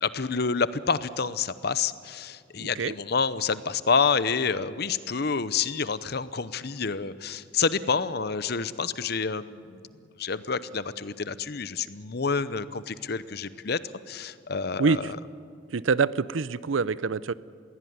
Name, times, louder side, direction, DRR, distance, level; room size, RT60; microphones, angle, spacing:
voice 1, 0.0-9.8 10.2-13.8 14.1-15.2, left 5 dB, 55° left, 15 dB, 0.8 m, -28 dB
voice 2, 2.6-2.9 14.8-15.1 15.7-17.3, right 4 dB, 85° right, 18 dB, 0.6 m, -25 dB
21.5 x 16.5 x 9.5 m, 2.3 s
head